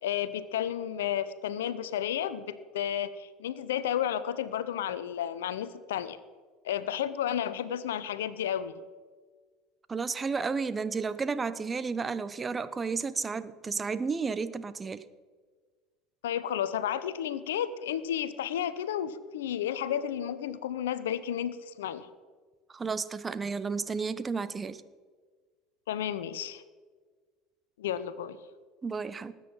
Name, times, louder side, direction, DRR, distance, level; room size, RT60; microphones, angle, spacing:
voice 1, 0.0-6.2 6.6-8.7 16.2-22.1 25.9-26.6 27.8-28.4, left 10 dB, 80° left, 15 dB, 0.8 m, -32 dB
voice 2, 9.9-15.0 22.7-24.8 28.8-29.3, right 5 dB, 25° right, 14 dB, 0.9 m, -32 dB
19.0 x 9.0 x 5.7 m, 1.5 s
hypercardioid pair, 70°, 0 cm